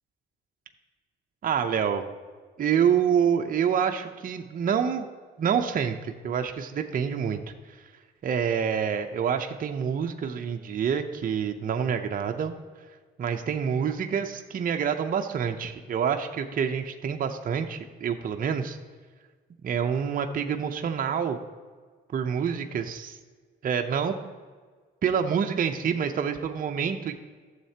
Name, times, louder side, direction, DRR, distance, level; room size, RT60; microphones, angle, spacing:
voice 1, 1.4-2.1 2.6-5.1 5.4-7.4 8.2-12.5 13.2-18.8 19.6-21.4 22.1-23.2 23.6-24.1 25.0-27.1, right 7 dB, 45° right, 5 dB, 0.7 m, -27 dB
12.5 x 7.3 x 2.9 m, 1.5 s
cardioid pair, 90°, 20 cm